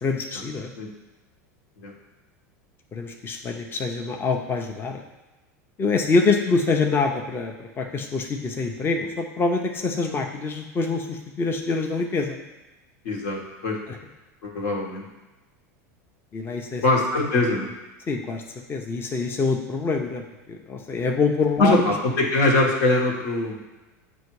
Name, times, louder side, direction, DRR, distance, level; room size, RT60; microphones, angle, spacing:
voice 1, 0.0-0.7 2.9-5.0 5.8-12.4 13.9-14.0 16.3-16.8 18.1-21.8, left 4 dB, 25° left, 2 dB, 0.7 m, -25 dB
voice 2, 13.0-13.8 14.4-15.1 16.8-17.7 21.6-23.6, left 2 dB, 75° left, -2 dB, 1.5 m, -22 dB
8.0 x 2.7 x 4.7 m, 1.1 s
hypercardioid pair, 105°, 9 cm